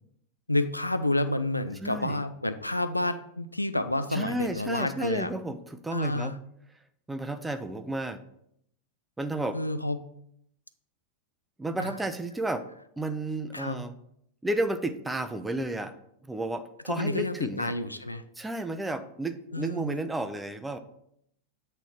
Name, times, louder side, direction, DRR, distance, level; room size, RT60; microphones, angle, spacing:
voice 1, 0.5-5.3 5.9-6.4 9.5-10.0 11.8-11.9 13.5-13.8 16.9-18.2 19.5-20.0, left 1 dB, 85° left, 11 dB, 0.4 m, -29 dB
voice 2, 1.8-2.2 4.1-6.3 7.1-8.2 9.2-9.6 11.6-12.7 13.0-14.0 14.4-16.0 16.2-17.7 18.4-20.8, right 2 dB, 5° right, 9 dB, 0.5 m, -32 dB
8.2 x 3.3 x 5.7 m, 0.73 s
figure-of-eight pair, 90°, 0 cm